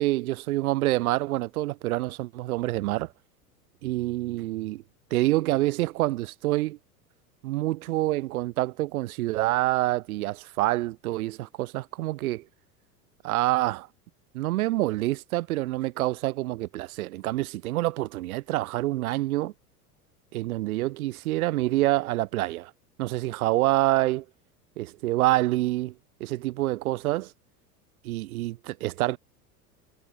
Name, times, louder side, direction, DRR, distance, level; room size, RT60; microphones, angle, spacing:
voice 1, 0.0-3.1 3.8-4.8 5.1-6.8 7.4-12.4 13.2-13.9 14.3-19.5 20.3-22.7 23.0-24.2 24.8-25.9 26.2-27.3 28.0-29.2, right 17 dB, 65° right, 0.7 m, -27 dB
figure-of-eight pair, 85°, 47 cm